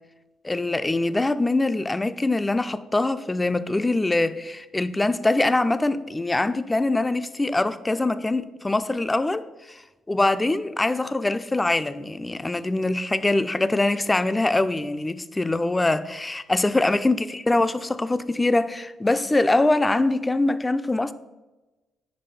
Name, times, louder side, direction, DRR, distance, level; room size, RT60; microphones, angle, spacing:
voice 1, 0.4-9.8 10.1-21.1, left 2 dB, 20° left, 0.4 m, -23 dB
5.3 x 5.1 x 4.2 m
figure-of-eight pair, 40°, 0 cm